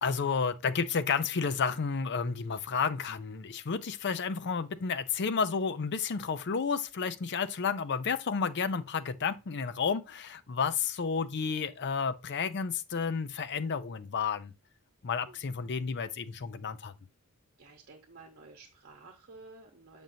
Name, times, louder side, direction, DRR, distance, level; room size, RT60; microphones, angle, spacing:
voice 1, 0.0-14.5 15.0-16.9, left 5 dB, 50° left, 0.5 m, -31 dB
voice 2, 17.6-20.0, right 3 dB, 50° right, 1.1 m, -52 dB
7.5 x 5.3 x 2.7 m
head